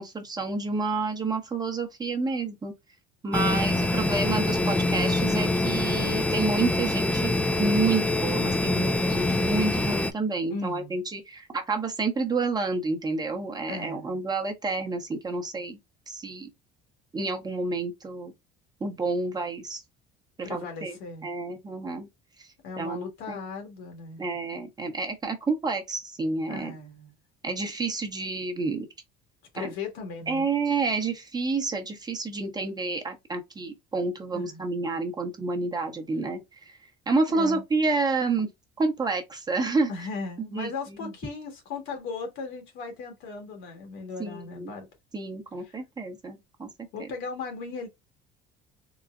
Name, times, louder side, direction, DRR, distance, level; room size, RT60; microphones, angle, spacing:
voice 1, 0.0-2.7 3.2-7.3 7.6-15.8 16.1-16.5 17.1-18.3 18.8-19.8 20.4-22.1 22.8-23.4 24.2-26.7 27.4-28.9 29.6-29.7 30.3-36.4 37.1-38.5 38.8-39.9 40.5-40.7 41.0-41.1 44.2-44.7 45.1-46.7, right 3 dB, 20° right, 0.8 m, -29 dB
sound 1, 3.3-10.1, left 2 dB, 5° left, 0.3 m, -25 dB
voice 2, 10.5-11.0 13.7-14.1 20.4-21.3 22.6-24.2 26.5-27.1 29.5-30.5 34.3-34.6 37.3-37.6 39.9-44.9 45.6-45.8 46.9-47.9, left 4 dB, 75° left, 1.4 m, -37 dB
3.8 x 2.0 x 2.4 m
cardioid pair, 110°, 20 cm